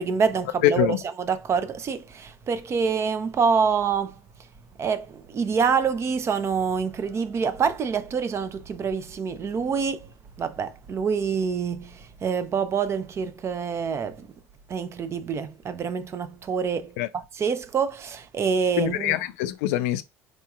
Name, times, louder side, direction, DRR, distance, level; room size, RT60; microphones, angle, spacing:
voice 1, 0.0-0.9 1.2-4.1 4.8-10.1 10.4-14.3 14.7-19.2, right 6 dB, 40° right, 0.6 m, -26 dB
voice 2, 0.6-1.0 17.0-17.1 18.8-20.0, left 13 dB, 80° left, 0.4 m, -23 dB
4.8 x 2.8 x 2.4 m
hypercardioid pair, 80°, 7 cm